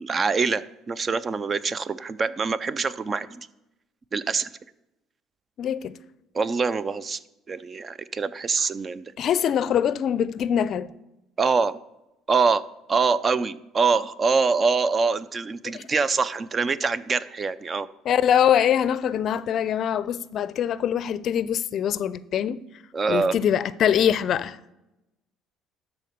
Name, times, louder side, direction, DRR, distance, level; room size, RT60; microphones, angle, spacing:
voice 1, 0.0-3.5 4.1-4.5 6.3-7.2 7.5-9.1 11.4-11.8 12.3-12.6 12.9-17.9 22.9-23.4, right 4 dB, 35° right, 0.5 m, -24 dB
voice 2, 5.6-6.0 9.2-10.9 15.7-15.9 18.1-22.6 23.1-24.6, left 9 dB, 55° left, 0.4 m, -23 dB
12.5 x 4.3 x 6.5 m
supercardioid pair, 90°, 0 cm